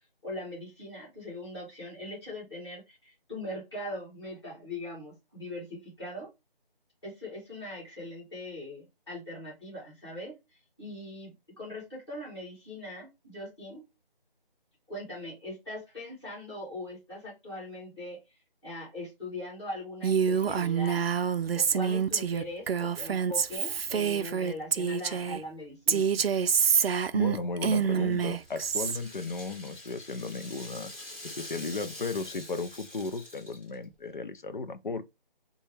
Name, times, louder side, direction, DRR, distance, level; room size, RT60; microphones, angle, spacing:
voice 1, 0.2-6.3 7.0-13.8 14.9-18.2 18.6-21.0 21.5-26.3, left 1 dB, 30° left, 2.5 m, -41 dB
Female speech woman speaking, 20.0-25.4 25.9-29.0, right 7 dB, 85° right, 0.5 m, -27 dB
voice 2, 27.1-30.9 31.2-35.0, left 4 dB, 55° left, 0.5 m, -35 dB
Rattle (instrument), 27.8-33.9, left 1 dB, 10° left, 1.3 m, -46 dB
3.8 x 2.3 x 3.2 m
figure-of-eight pair, 175°, 29 cm